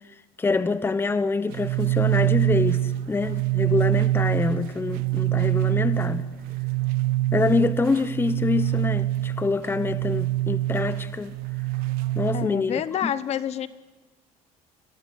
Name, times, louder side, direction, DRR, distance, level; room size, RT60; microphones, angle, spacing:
voice 1, 0.4-6.3 7.3-11.4 12.1-13.1, left 4 dB, 15° left, 0.9 m, -26 dB
sound 1, 1.5-12.5, right 16 dB, 80° right, 1.1 m, -25 dB
voice 2, 12.3-13.7, left 10 dB, 45° left, 1.0 m, -28 dB
30.0 x 22.5 x 7.9 m
cardioid pair, 120°, 15 cm